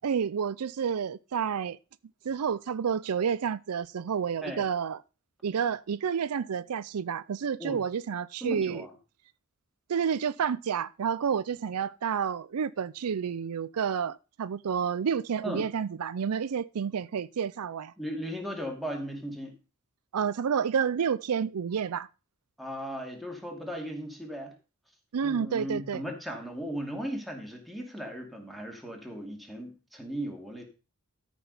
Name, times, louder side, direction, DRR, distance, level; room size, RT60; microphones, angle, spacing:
voice 1, 0.0-1.8 2.2-5.0 5.4-8.8 9.9-17.9 20.1-22.1 25.1-26.0, right 7 dB, 85° right, 0.5 m, -30 dB
voice 2, 8.4-8.9 15.4-15.7 18.0-19.6 22.6-24.5 25.2-30.6, equal, ahead, 2.6 m, -37 dB
13.0 x 6.1 x 5.4 m
head